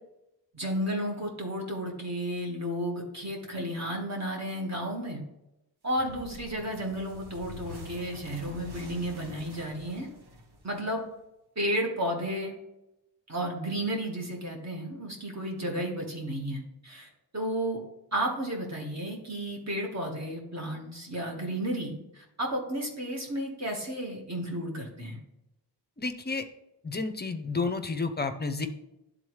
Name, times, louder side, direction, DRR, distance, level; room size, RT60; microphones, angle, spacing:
voice 1, 0.5-5.2 5.8-10.1 10.6-11.0 11.5-12.6 13.3-17.8 18.1-25.2, equal, 40° right, 0 dB, 1.6 m, -33 dB
sound 1, 5.9-11.1, equal, 60° right, 1.5 m, -46 dB
voice 2, 26.0-26.4 26.8-28.7, left 3 dB, 25° left, 9 dB, 0.5 m, -31 dB
11.5 x 3.9 x 3.1 m, 0.91 s
wide cardioid pair, 155°, 43 cm